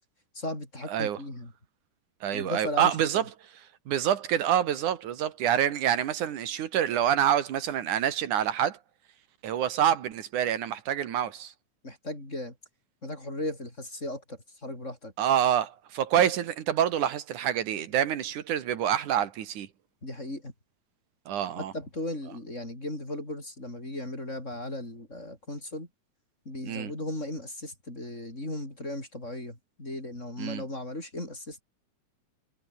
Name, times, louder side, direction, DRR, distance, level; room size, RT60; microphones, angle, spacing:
voice 1, 0.3-1.5 2.3-3.0 11.8-12.6 13.0-15.1 20.0-20.5 21.6-25.9 26.5-31.6, left 1 dB, 20° left, 7.7 m, -36 dB
voice 2, 2.2-3.2 3.9-8.8 9.4-11.5 15.2-19.7 21.3-21.7 26.6-26.9 30.4-30.6, right 10 dB, 80° right, 3.2 m, -27 dB
omnidirectional pair, 3.4 m